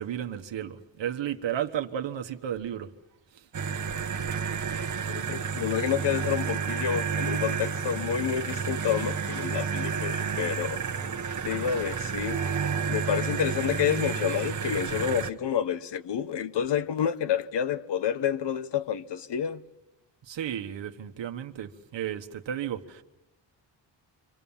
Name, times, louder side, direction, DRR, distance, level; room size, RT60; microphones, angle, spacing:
voice 1, 0.0-2.9 3.3-3.5 20.2-23.0, right 10 dB, 75° right, 1.4 m, -33 dB
sound 1, 3.5-15.3, right 6 dB, 40° right, 1.3 m, -31 dB
voice 2, 5.1-10.8 11.4-12.4 12.9-19.6, left 9 dB, 65° left, 1.1 m, -29 dB
sound 2, 15.3-15.5 15.9-16.2 16.5-16.7, right 1 dB, ahead, 4.2 m, -56 dB
28.5 x 25.0 x 7.2 m
wide cardioid pair, 170°, 45 cm